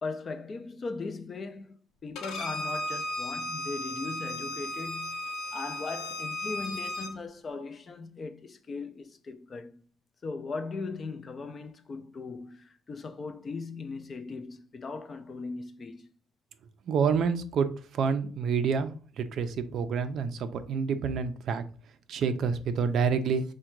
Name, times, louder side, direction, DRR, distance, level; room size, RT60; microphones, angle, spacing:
voice 1, 0.0-9.8 10.2-16.1, left 4 dB, 30° left, 0.3 m, -39 dB
Bowed string instrument, 2.2-7.1, left 1 dB, 85° left, 0.7 m, -35 dB
voice 2, 16.9-18.9 19.2-21.6 22.1-23.4, right 6 dB, 55° right, 0.4 m, -28 dB
3.6 x 2.2 x 4.4 m
cardioid pair, 155°, 0 cm